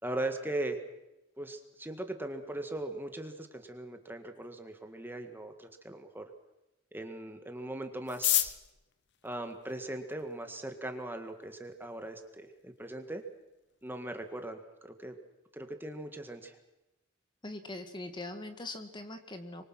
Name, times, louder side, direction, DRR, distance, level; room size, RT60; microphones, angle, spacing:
voice 1, 0.0-0.8 1.4-6.3 6.9-8.5 9.2-13.2 13.8-15.2 15.5-16.6, right 1 dB, 10° right, 6 dB, 1.9 m, -39 dB
sound 1, 8.1-10.3 11.1-11.2 11.4-11.5 11.8-12.3 12.6-12.7 12.9-13.3 13.6-13.8 14.2-14.5, left 14 dB, 60° left, 1.0 m, -32 dB
voice 2, 17.4-19.6, left 2 dB, 25° left, 7 dB, 1.9 m, -42 dB
25.0 x 24.5 x 6.1 m, 0.95 s
head